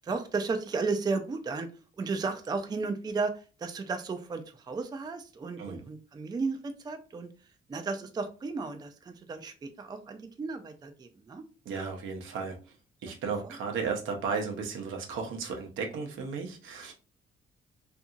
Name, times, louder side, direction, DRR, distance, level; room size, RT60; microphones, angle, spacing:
voice 1, 0.0-1.7 2.0-3.3 3.6-7.3 7.7-11.4 13.4-13.6, right 4 dB, 20° right, 7 dB, 0.4 m, -34 dB
voice 2, 11.7-12.6 13.0-16.9, right 5 dB, 80° right, 2 dB, 0.7 m, -34 dB
2.7 x 2.6 x 2.4 m, 0.35 s
cardioid pair, 90°, 20 cm